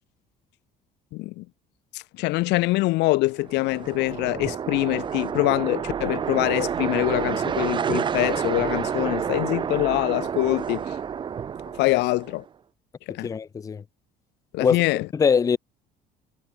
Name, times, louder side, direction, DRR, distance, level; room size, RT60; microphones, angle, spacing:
voice 1, 1.1-1.5 1.9-11.0 11.7-12.4 13.1-13.3 14.5-15.1, left 21 dB, 85° left, 2.8 m, -24 dB
sound 1, 3.4-12.4, right 7 dB, 30° right, 2.9 m, -29 dB
voice 2, 13.2-13.8 14.6-14.8 15.1-15.6, left 6 dB, 20° left, 0.9 m, -21 dB
cardioid pair, 180°, 17 cm